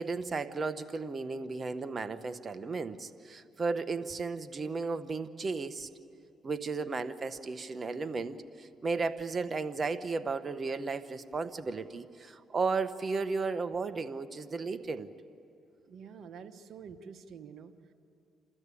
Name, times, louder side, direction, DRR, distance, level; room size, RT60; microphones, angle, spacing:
voice 1, 0.0-5.9 6.4-15.1, right 4 dB, 40° right, 11 dB, 1.1 m, -34 dB
voice 2, 15.9-17.7, right 6 dB, 65° right, 8 dB, 1.2 m, -47 dB
29.0 x 13.0 x 8.4 m, 2.7 s
cardioid pair, 75°, 0 cm